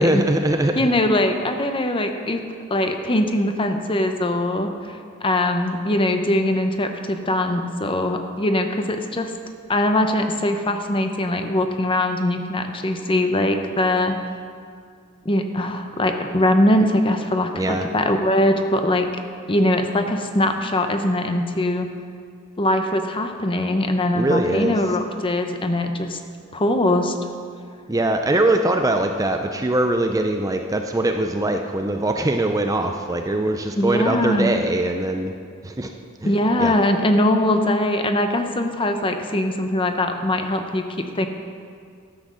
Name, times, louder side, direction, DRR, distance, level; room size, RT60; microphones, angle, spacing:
voice 1, 0.0-0.9 17.5-17.9 24.1-24.8 27.9-35.3 35.6-35.9 36.2-36.7, right 1 dB, 15° right, 5 dB, 0.5 m, -22 dB
voice 2, 0.7-2.4 2.7-9.3 9.7-14.2 15.2-19.1 19.5-21.9 22.6-26.2 26.5-27.1 33.8-34.5 36.2-41.3, left 1 dB, 25° left, 6 dB, 0.7 m, -21 dB
12.0 x 7.8 x 6.3 m, 2.2 s
head